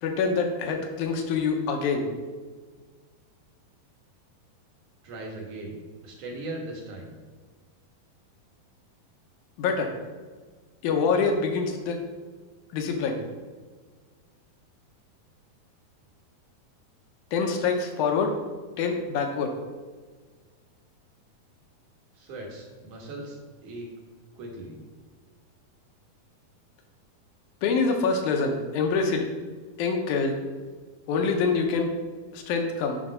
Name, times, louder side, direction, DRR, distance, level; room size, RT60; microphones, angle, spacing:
voice 1, 0.0-2.0 9.6-9.9 10.8-12.0 12.7-13.2 17.3-18.3 18.8-19.5 27.6-29.3 29.8-30.4 31.1-31.9 32.3-33.0, left 4 dB, 75° left, 3 dB, 1.9 m, -25 dB
voice 2, 5.0-5.8 6.0-7.1 22.1-23.4 23.6-23.9 24.3-24.8, right 2 dB, 60° right, -1 dB, 2.5 m, -38 dB
9.8 x 3.4 x 5.4 m, 1.4 s
omnidirectional pair, 4.3 m